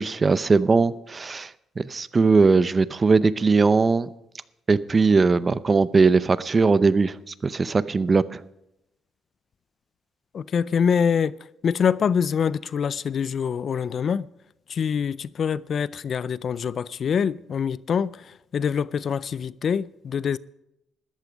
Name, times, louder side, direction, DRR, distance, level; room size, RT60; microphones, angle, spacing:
voice 1, 0.0-4.1 4.7-8.4, right 4 dB, 30° right, 0.6 m, -20 dB
voice 2, 10.3-11.4 11.6-14.3 14.7-20.4, left 7 dB, 55° left, 0.4 m, -25 dB
14.0 x 12.0 x 5.1 m
cardioid pair, 90°, 0 cm